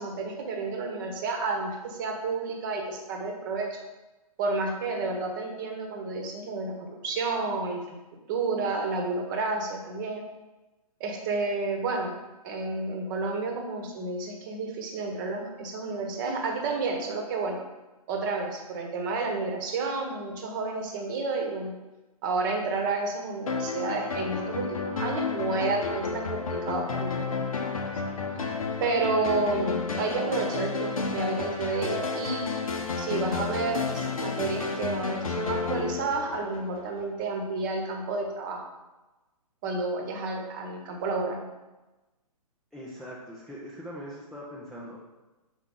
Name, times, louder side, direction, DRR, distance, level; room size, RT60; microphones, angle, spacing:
voice 1, 0.0-3.8 4.4-6.7 7.0-8.0 8.3-10.2 11.0-12.1 12.4-17.6 18.1-21.7 22.2-27.5 28.8-32.5 33.0-38.6 39.6-41.4, right 3 dB, 30° right, 2 dB, 1.0 m, -30 dB
sound 1, 23.5-37.0, left 4 dB, 65° left, 0.9 m, -31 dB
voice 2, 42.7-45.0, equal, ahead, -7 dB, 0.5 m, -41 dB
5.8 x 4.5 x 3.7 m, 1.1 s
figure-of-eight pair, 125°, 19 cm